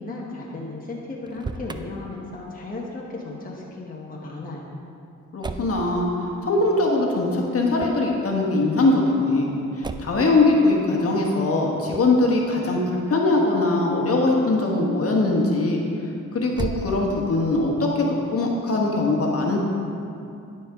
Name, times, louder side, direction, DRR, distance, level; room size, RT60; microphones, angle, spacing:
voice 1, 0.0-4.7, left 2 dB, 30° left, -3 dB, 1.1 m, -35 dB
Motor vehicle (road), 1.1-1.8 5.4-5.8 7.7-8.1 9.8-10.3 11.9-12.2 16.5-17.3, right 3 dB, 15° right, 0.3 m, -33 dB
voice 2, 5.3-15.8 16.3-19.6, left 2 dB, 50° left, -1 dB, 1.4 m, -21 dB
12.0 x 4.6 x 3.5 m, 2.6 s
cardioid pair, 70°, 31 cm